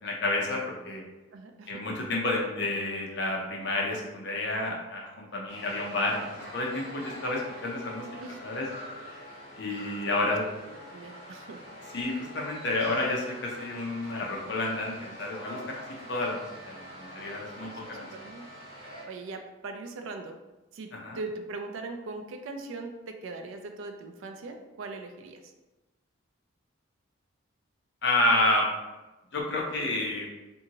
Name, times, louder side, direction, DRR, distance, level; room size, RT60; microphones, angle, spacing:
voice 1, 0.0-1.0 1.7-8.0 8.4-8.7 9.6-10.4 11.9-15.6 16.1-18.1 20.9-21.2 28.0-28.6 29.3-30.3, left 2 dB, 55° left, -2 dB, 0.6 m, -30 dB
voice 2, 1.3-1.8 7.1-7.2 8.2-8.4 10.2-10.4 10.6-11.6 15.7-15.8 17.6-18.5 18.8-20.4 20.7-20.9 21.1-25.5, right 3 dB, 70° right, 5 dB, 0.4 m, -40 dB
sound 1, 5.5-19.0, equal, 25° right, 1.3 m, -45 dB
2.6 x 2.6 x 2.8 m, 1.1 s
head